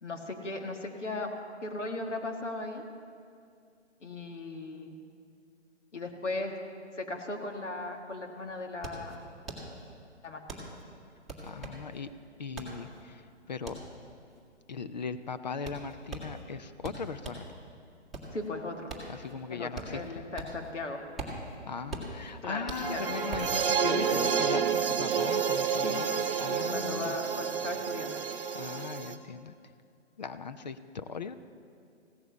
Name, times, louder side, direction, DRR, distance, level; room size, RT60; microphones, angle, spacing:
voice 1, 0.0-1.3 1.6-2.9 4.0-5.0 5.9-6.6 7.0-9.2 10.2-10.7 18.3-18.9 19.5-21.0 22.4-23.2 25.8-26.1 26.5-28.2, left 2 dB, 80° left, 3 dB, 1.9 m, -37 dB
sound 1, 8.2-17.5 17.9-20.7 21.0-23.6, right 2 dB, ahead, 1.7 m, -42 dB
voice 2, 11.4-12.1 12.4-13.8 14.7-17.6 19.1-20.2 21.7-27.2 28.5-29.5 30.2-31.4, left 5 dB, 40° left, 11 dB, 0.5 m, -39 dB
sound 2, 22.7-29.2, right 7 dB, 50° right, 1.0 m, -29 dB
16.0 x 9.3 x 6.8 m, 2.4 s
hypercardioid pair, 150°, 36 cm